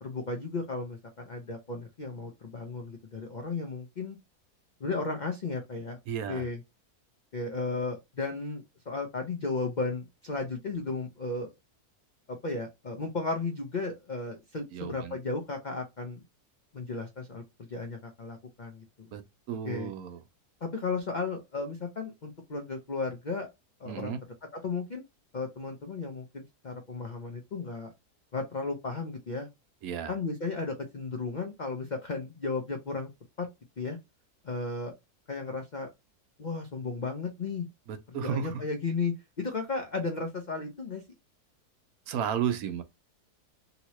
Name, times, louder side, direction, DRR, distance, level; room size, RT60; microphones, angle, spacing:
voice 1, 0.0-4.2 4.8-6.0 6.3-6.6 7.3-11.5 12.3-16.2 16.7-19.1 19.6-19.9 20.6-23.5 23.8-24.1 24.5-25.0 25.3-27.9 28.3-29.5 30.1-33.1 33.4-33.5 33.8-34.0 34.4-34.9 35.3-35.9 36.4-37.7 38.1-41.0, left 3 dB, 90° left, 0.4 m, -34 dB
voice 2, 6.1-6.5 14.7-15.2 19.1-20.2 23.9-24.2 29.8-30.1 37.9-38.6 42.1-42.8, right 8 dB, 75° right, 1.0 m, -33 dB
2.9 x 2.9 x 2.9 m
omnidirectional pair, 1.7 m